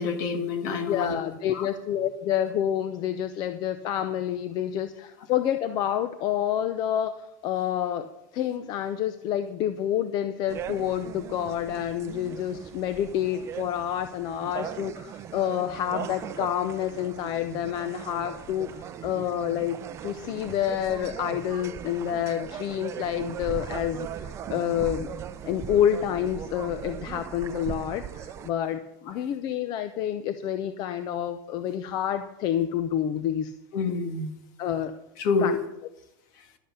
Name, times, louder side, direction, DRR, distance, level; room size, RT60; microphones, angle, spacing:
voice 1, 0.0-1.2 1.5-1.7 33.7-34.3 35.2-35.6, left 4 dB, 55° left, 5 dB, 1.9 m, -27 dB
voice 2, 0.8-19.8 20.0-25.1 25.4-33.5 34.6-34.9 35.4-35.5, left 10 dB, 35° left, 11 dB, 0.6 m, -28 dB
sound 1, 10.5-28.5, right 9 dB, 25° right, 0.6 m, -39 dB
12.0 x 8.0 x 6.7 m, 0.84 s
supercardioid pair, 155°, 12 cm